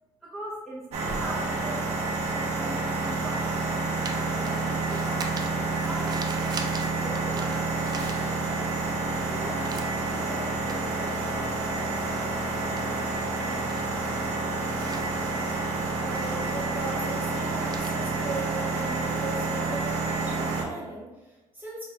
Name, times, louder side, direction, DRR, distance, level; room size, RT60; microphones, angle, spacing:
voice 1, 0.2-3.7 4.1-7.7, right 1 dB, 5° left, -9 dB, 0.8 m, -41 dB
sound 1, 0.9-20.6, right 3 dB, 75° right, 0.8 m, -29 dB
sound 2, 1.0-8.8 9.1-19.2, right 4 dB, 35° right, 0.4 m, -44 dB
voice 2, 9.3-9.8 10.1-12.0 12.3-13.0 16.0-21.9, right 2 dB, 15° right, -5 dB, 1.2 m, -39 dB
4.9 x 3.0 x 2.3 m, 1.1 s
cardioid pair, 140°, 11 cm